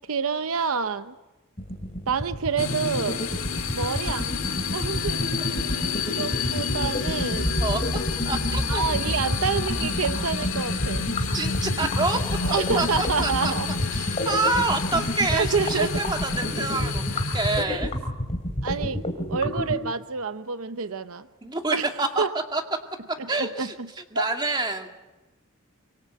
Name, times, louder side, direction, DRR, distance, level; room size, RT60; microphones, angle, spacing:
voice 1, 0.1-1.1 2.1-3.2 3.7-4.4 4.7-7.5 8.7-11.1 12.4-13.7 15.3-16.0 17.6-17.9 18.6-19.0 19.3-21.3 21.7-21.9 22.2-22.3 23.2-23.9 24.1-24.3, right 5 dB, 75° right, 11 dB, 0.8 m, -28 dB
sound 1, 1.6-19.8, equal, 30° left, 3.0 m, -29 dB
sound 2, 2.6-17.6, left 5 dB, 70° left, 1.7 m, -30 dB
sound 3, 7.4-13.1, equal, 5° left, 2.5 m, -35 dB
voice 2, 8.3-8.8 11.3-12.2 12.5-13.5 13.9-17.0 17.3-17.9 21.4-22.2 22.5-22.6 23.3-24.9, right 3 dB, 20° right, 4 dB, 2.0 m, -27 dB
24.5 x 24.5 x 7.9 m, 1.1 s
head